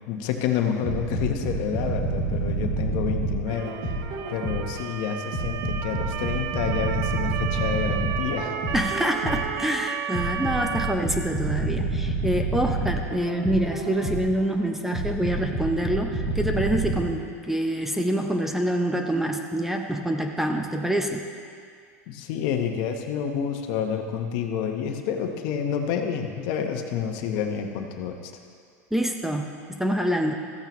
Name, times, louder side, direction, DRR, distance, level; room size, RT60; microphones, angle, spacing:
voice 1, 0.1-3.8 4.3-8.7 22.1-28.3, left 7 dB, 55° left, 4 dB, 1.0 m, -29 dB
sound 1, 0.8-4.8 5.3-9.6 10.1-14.4 14.9-17.0, right 3 dB, 70° right, 2.7 m, -28 dB
Motor vehicle (road) / Siren, 3.5-10.9, right 9 dB, 50° right, 0.5 m, -33 dB
voice 2, 8.7-21.3 28.9-30.3, right 1 dB, 5° right, 3 dB, 0.7 m, -26 dB
14.5 x 8.9 x 3.1 m, 2.2 s
supercardioid pair, 115°, 8 cm